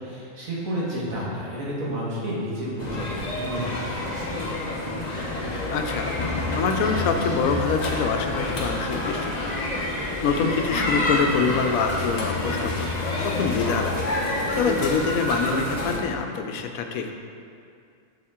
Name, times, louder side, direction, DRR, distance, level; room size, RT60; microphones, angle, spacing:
voice 1, 0.0-4.6, equal, 80° right, -6 dB, 2.0 m, -31 dB
sound 1, 2.8-16.0, left 1 dB, 35° left, 0.8 m, -28 dB
sound 2, 5.2-14.1, left 6 dB, 60° left, 0.6 m, -36 dB
voice 2, 5.7-6.2 6.6-9.7 9.9-13.0 13.2-14.0 14.3-17.1, left 5 dB, 85° left, 5 dB, 1.1 m, -26 dB
6.9 x 6.3 x 3.7 m, 2.4 s
omnidirectional pair, 1.4 m